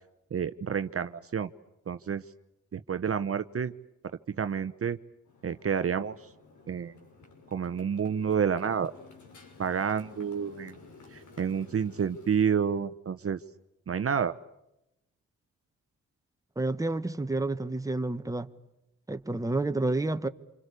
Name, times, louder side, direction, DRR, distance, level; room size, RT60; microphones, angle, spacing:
voice 1, 0.3-1.5 1.9-2.2 2.7-3.7 4.3-5.0 5.4-6.1 6.7-6.9 7.5-8.9 9.6-10.7 11.1-13.4 13.9-14.3, right 7 dB, 50° right, 1.0 m, -29 dB
Motorcycle, 5.3-12.5, left 4 dB, 75° left, 6.3 m, -53 dB
voice 2, 16.5-18.5 19.1-20.3, right 2 dB, 10° right, 1.5 m, -29 dB
28.0 x 25.0 x 8.4 m
cardioid pair, 55°, 30 cm